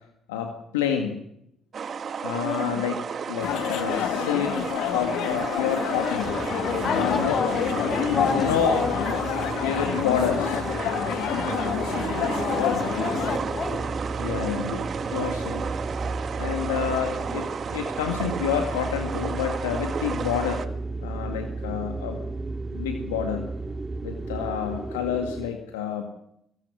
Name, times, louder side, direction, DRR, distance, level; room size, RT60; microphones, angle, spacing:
voice 1, 0.3-1.2 2.2-3.0 3.3-6.3 6.9-7.4 8.1-8.9 9.5-10.6 14.2-15.7 16.4-20.7 21.0-22.2 22.7-23.5 24.0-26.1, left 8 dB, 90° left, 4 dB, 2.0 m, -29 dB
sound 1, 1.7-20.7, right 6 dB, 50° right, 1.6 m, -33 dB
voice 2, 2.4-2.9 6.8-8.9 11.9-13.8 17.3-17.4, left 3 dB, 45° left, 6 dB, 6.9 m, -31 dB
sound 2, 3.4-13.4, left 11 dB, 75° left, 1.2 m, -28 dB
sound 3, 6.2-25.5, right 3 dB, 25° right, 3.4 m, -34 dB
24.5 x 18.5 x 6.3 m, 0.75 s
hypercardioid pair, 50°, 0 cm